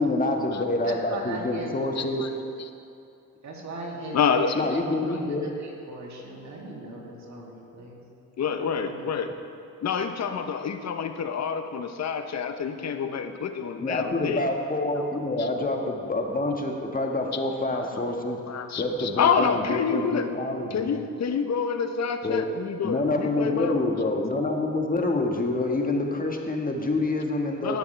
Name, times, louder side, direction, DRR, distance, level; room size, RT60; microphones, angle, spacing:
voice 1, 0.0-2.4 4.5-5.5 13.8-18.4 18.8-20.9 22.2-22.4 22.8-27.8, left 2 dB, 25° left, 2 dB, 1.5 m, -27 dB
voice 2, 0.9-2.1 3.4-4.6 5.1-8.0 8.6-9.1, right 2 dB, 60° right, -3 dB, 2.6 m, -39 dB
voice 3, 2.0-2.3 2.6-2.7 4.1-4.7 5.1-5.2 8.4-9.3 9.8-14.5 14.9-15.0 15.4-15.5 17.3-17.4 17.7-20.3 20.7-23.8 27.6-27.8, left 6 dB, 55° left, 8 dB, 0.9 m, -28 dB
17.5 x 7.0 x 3.3 m, 2.6 s
supercardioid pair, 60°, 33 cm